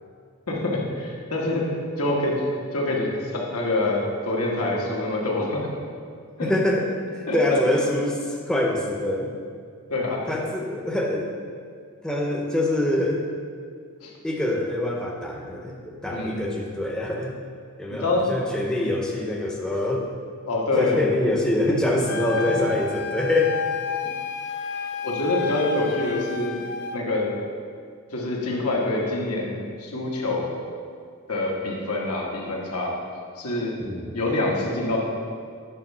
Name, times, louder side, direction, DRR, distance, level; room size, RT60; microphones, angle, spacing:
voice 1, 0.5-1.7 2.0-2.4 2.7-5.7 6.4-6.5 7.3-7.6 9.9-10.3 14.0-14.1 16.1-16.4 17.9-18.3 20.5-21.1 21.6-21.7 22.5-22.6 25.0-26.6 26.9-27.3 28.1-30.5 31.3-33.0 33.4-33.8 34.1-35.0, left 2 dB, 85° left, -2 dB, 1.3 m, -26 dB
voice 2, 6.4-8.2 8.5-9.3 10.3-11.3 12.0-13.3 14.2-17.4 17.8-20.1 20.8-23.6 33.8-34.1, left 1 dB, 5° left, -1 dB, 0.6 m, -25 dB
Wind instrument woodwind instrument, 22.1-27.0, left 4 dB, 50° left, 0.4 m, -31 dB
9.0 x 3.5 x 5.4 m, 2.2 s
head